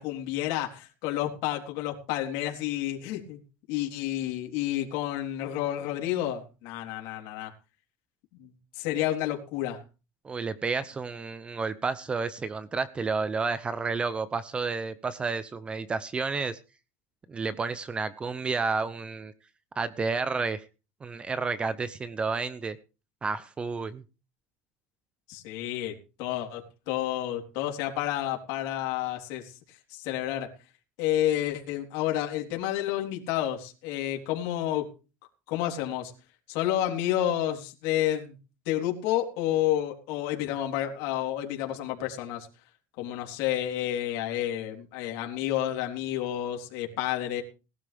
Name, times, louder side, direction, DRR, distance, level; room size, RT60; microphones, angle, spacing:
voice 1, 0.0-3.4 3.7-7.5 8.4-9.8 25.3-29.5 29.9-30.5 31.0-34.9 35.5-36.1 36.5-38.4 38.7-42.5 43.0-47.4, left 12 dB, 65° left, 2 dB, 3.6 m, -30 dB
voice 2, 10.2-16.6 17.3-19.3 19.8-20.6 21.0-22.8 23.2-24.0, right 4 dB, 15° right, 15 dB, 0.7 m, -31 dB
19.0 x 12.5 x 3.5 m, 0.33 s
cardioid pair, 150°, 6 cm